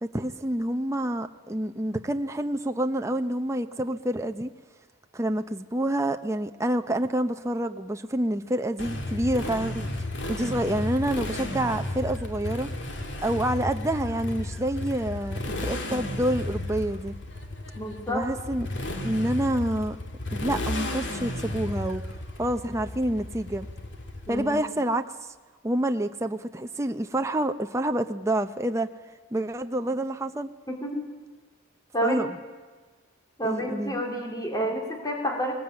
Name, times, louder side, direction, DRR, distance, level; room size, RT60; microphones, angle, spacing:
voice 1, 0.0-4.5 5.1-9.9 10.3-12.7 13.2-17.1 18.1-18.7 19.0-20.0 20.3-22.0 22.4-23.7 24.3-25.0 25.6-28.9 29.3-30.5 32.0-32.4 33.4-34.0, right 1 dB, 15° right, 0.6 m, -28 dB
Motorcycle, 8.8-24.6, left 1 dB, 70° left, 2.3 m, -33 dB
voice 2, 17.8-18.2 24.3-24.6 30.7-31.0 31.9-32.2 33.4-35.5, equal, 20° left, 3.0 m, -29 dB
20.5 x 19.5 x 8.8 m
head